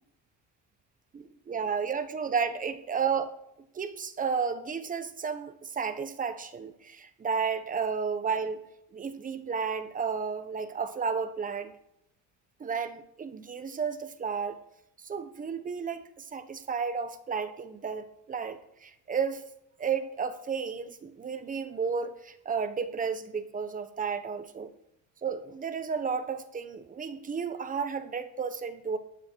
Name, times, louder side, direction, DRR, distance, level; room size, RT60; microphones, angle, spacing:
voice 1, 1.1-3.3 3.7-11.7 12.6-14.6 15.0-19.4 19.8-24.7 25.2-29.0, right 6 dB, 25° right, 10 dB, 1.1 m, -32 dB
12.5 x 9.3 x 4.6 m, 0.80 s
cardioid pair, 145°, 34 cm